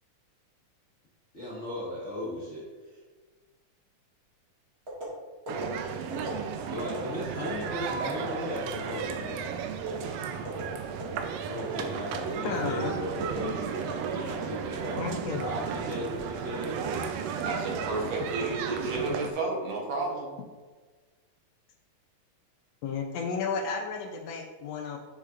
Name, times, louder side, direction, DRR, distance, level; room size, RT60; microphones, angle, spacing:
voice 1, 1.3-3.0 6.7-9.5 9.8-10.2 11.5-15.0 15.4-17.8, left 1 dB, 40° left, -9 dB, 1.0 m, -37 dB
sound 1, 4.9-5.1 5.5-5.6 6.1-6.3 6.8-7.0 7.4-7.6 8.1-8.3 8.7-8.9 9.3-9.5 9.9-10.0 10.4-10.6 11.0-11.2 11.6-11.8 12.1-12.3 12.6-12.8 13.2-13.4 13.7-13.9 14.3-14.4 14.8-15.5 15.9-16.2, equal, 35° right, 1.6 m, -39 dB
sound 2, 5.5-19.3, right 7 dB, 90° right, 1.4 m, -34 dB
voice 2, 12.4-13.0 15.0-15.5 18.9-19.2 22.8-25.0, left 5 dB, 80° left, 3 dB, 1.5 m, -33 dB
voice 3, 17.4-20.4, right 2 dB, 65° right, -1 dB, 2.1 m, -32 dB
7.4 x 6.5 x 2.5 m, 1.4 s
omnidirectional pair, 3.6 m